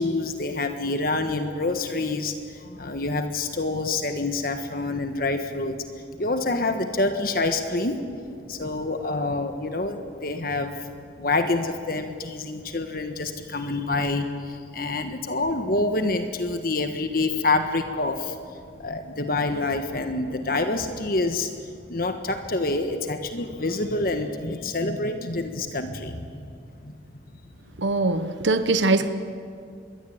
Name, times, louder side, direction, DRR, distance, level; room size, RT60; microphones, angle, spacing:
voice 1, 0.0-10.9 11.2-26.5 26.8-26.9, left 2 dB, 50° left, 7 dB, 1.4 m, -27 dB
voice 2, 27.8-29.1, right 3 dB, 85° right, 10 dB, 1.1 m, -22 dB
26.5 x 22.0 x 8.8 m, 2.3 s
head